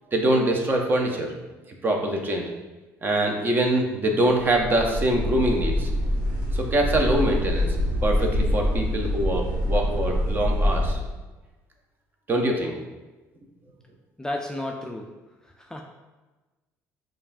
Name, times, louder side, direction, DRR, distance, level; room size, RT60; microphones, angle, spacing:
voice 1, 0.1-1.3 1.8-2.5 3.0-5.9 6.5-7.8 8.0-11.0 12.3-12.8, right 1 dB, 30° right, 1 dB, 0.7 m, -24 dB
sound 1, 4.5-11.0, left 1 dB, 75° right, 1.3 m, -25 dB
voice 2, 14.2-15.1 15.4-15.8, left 1 dB, 10° left, 1 dB, 0.3 m, -33 dB
5.3 x 2.4 x 2.6 m, 1.2 s
supercardioid pair, 90°, 7 cm